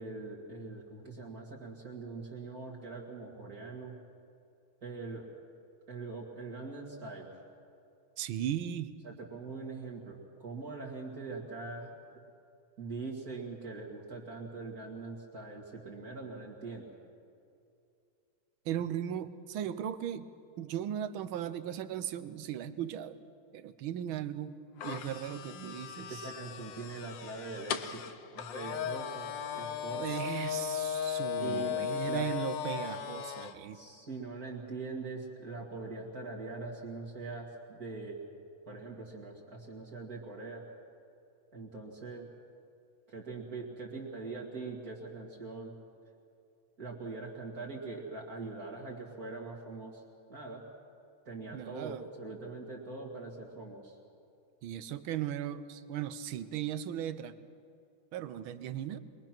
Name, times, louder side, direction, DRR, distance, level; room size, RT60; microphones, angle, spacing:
voice 1, 0.0-4.0 4.8-5.3 5.9-7.4 9.0-11.9 12.8-16.9 26.1-28.0 28.3-30.3 31.4-32.3 33.7-38.2 38.7-40.6 41.5-42.3 43.1-45.7 46.8-50.0 50.3-50.6 51.3-54.0, right 3 dB, 45° right, -2 dB, 2.5 m, -42 dB
voice 2, 8.2-8.9 18.6-23.2 23.5-26.2 30.0-33.8 51.5-52.0 54.6-57.4 58.1-59.0, right 10 dB, 80° right, 13 dB, 1.6 m, -37 dB
sound 1, 24.8-33.5, left 8 dB, 65° left, 1.5 m, -37 dB
23.0 x 21.5 x 6.0 m, 2.6 s
omnidirectional pair, 2.2 m